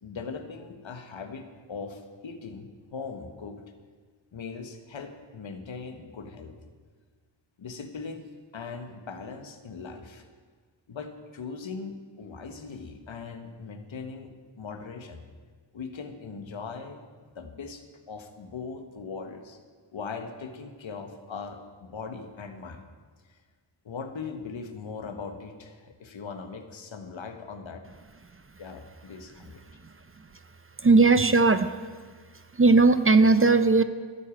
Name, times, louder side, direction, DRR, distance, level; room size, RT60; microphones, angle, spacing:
voice 1, 0.0-3.6 4.3-6.6 7.6-10.2 10.9-15.3 15.7-17.0 17.3-19.6 19.9-22.9 23.3-23.4 23.8-27.8 28.6-29.6, left 5 dB, 70° left, 7 dB, 1.5 m, -40 dB
voice 2, 30.8-31.7 32.6-33.8, right 3 dB, 25° right, 11 dB, 0.7 m, -18 dB
12.0 x 8.5 x 8.6 m, 1.6 s
cardioid pair, 60°, 48 cm